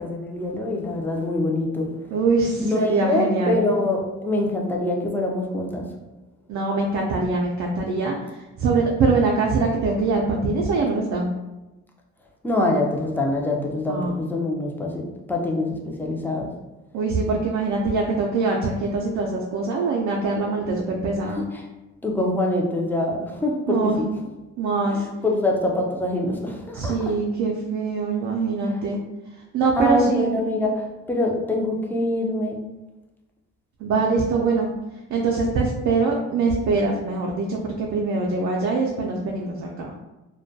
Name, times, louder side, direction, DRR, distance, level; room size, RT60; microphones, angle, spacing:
voice 1, 0.0-1.9 2.6-5.9 12.4-16.5 21.4-21.5 22.0-23.9 24.9-27.0 29.8-32.6, left 1 dB, 5° left, -1 dB, 0.4 m, -24 dB
voice 2, 2.1-3.6 6.5-11.3 13.9-14.2 16.9-21.4 23.7-24.1 24.6-25.1 26.7-29.0 29.5-30.3 33.8-34.7 35.1-39.9, right 3 dB, 65° right, -1 dB, 0.4 m, -23 dB
2.2 x 2.1 x 2.6 m, 1.0 s
cardioid pair, 90°, 30 cm